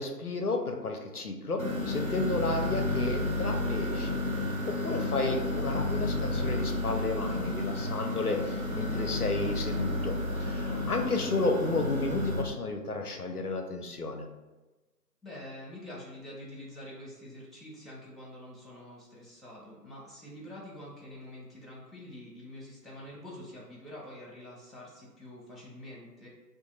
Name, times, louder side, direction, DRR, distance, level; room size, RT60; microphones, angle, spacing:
voice 1, 0.0-4.2 4.7-14.2, left 3 dB, 65° left, 4 dB, 0.5 m, -32 dB
sound 1, 1.6-12.4, left 1 dB, 55° right, 0.5 m, -31 dB
voice 2, 4.9-5.4 10.8-11.0 15.2-26.3, left 1 dB, ahead, -5 dB, 0.6 m, -46 dB
2.8 x 2.5 x 3.8 m, 1.2 s
figure-of-eight pair, 180°, 50 cm